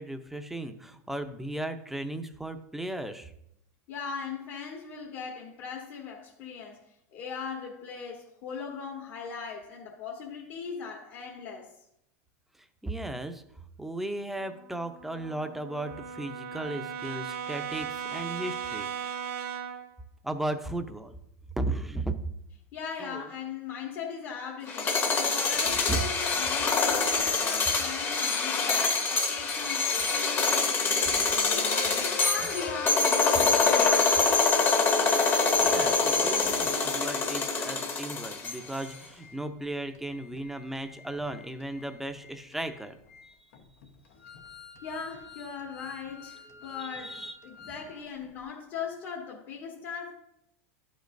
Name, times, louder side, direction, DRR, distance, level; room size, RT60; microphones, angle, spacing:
voice 1, 0.0-3.3 12.6-13.4 13.8-19.2 20.2-21.2 21.6-22.1 23.0-23.3 25.9-26.0 35.6-42.9 43.2-43.3 46.5-47.7, right 1 dB, 5° right, 0.5 m, -36 dB
voice 2, 3.9-6.8 7.1-11.7 22.7-31.2 31.5-34.0 44.8-50.1, left 6 dB, 60° left, 1.3 m, -39 dB
Brass instrument, 14.4-19.9, right 8 dB, 65° right, 0.7 m, -37 dB
sound 1, 24.7-38.8, left 4 dB, 25° left, 0.9 m, -25 dB
Organ, 31.3-36.8 37.4-37.5 37.7-37.9 38.3-47.9 48.2-48.3, left 5 dB, 85° left, 1.0 m, -43 dB
11.5 x 5.2 x 2.6 m
supercardioid pair, 125°, 8 cm